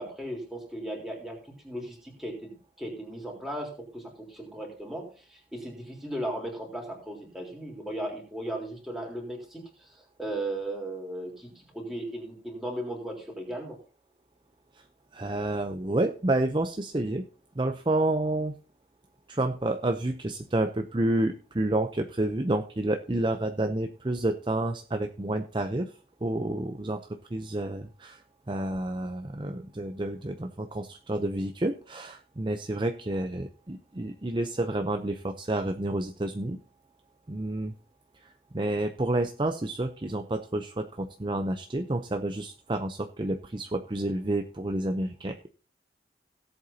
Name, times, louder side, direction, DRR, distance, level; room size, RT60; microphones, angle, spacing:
voice 1, 0.0-1.4 1.6-13.8, right 1 dB, ahead, -1 dB, 3.7 m, -36 dB
voice 2, 15.1-17.2 17.6-18.5 19.3-25.9 26.2-27.0 27.3-28.2 28.5-36.6 37.3-37.7 38.5-45.5, right 1 dB, 25° right, 6 dB, 0.6 m, -29 dB
17.5 x 7.9 x 2.8 m, 0.38 s
head